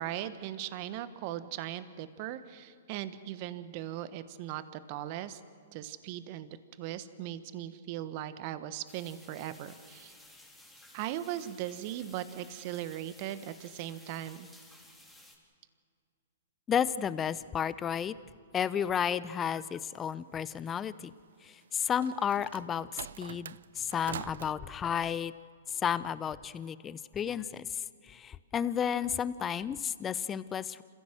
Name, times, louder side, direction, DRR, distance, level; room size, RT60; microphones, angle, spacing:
voice 1, 0.0-5.4 5.7-10.2 10.9-14.5, right 12 dB, 45° right, 13 dB, 1.3 m, -39 dB
sound 1, 8.9-15.4, left 1 dB, ahead, 3.8 m, -56 dB
voice 2, 16.7-18.1 18.5-21.1 21.4-22.9 23.2-25.3 25.7-30.8, left 8 dB, 20° left, 16 dB, 0.7 m, -32 dB
sound 2, 21.6-24.5, right 8 dB, 70° right, 0.4 m, -44 dB
28.0 x 15.5 x 7.9 m, 2.2 s
hypercardioid pair, 125°, 0 cm